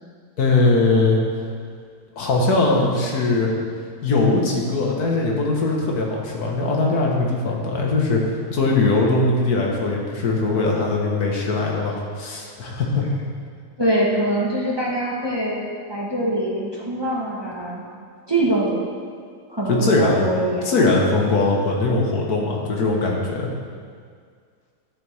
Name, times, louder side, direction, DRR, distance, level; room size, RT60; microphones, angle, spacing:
voice 1, 0.4-1.2 2.2-3.6 4.0-13.1 19.7-20.3 20.7-23.5, left 3 dB, 85° left, -1 dB, 1.9 m, -20 dB
voice 2, 13.8-17.8 18.3-19.2 19.5-20.7, right 1 dB, 20° right, -5 dB, 1.2 m, -24 dB
12.5 x 6.8 x 3.4 m, 2.1 s
omnidirectional pair, 1.6 m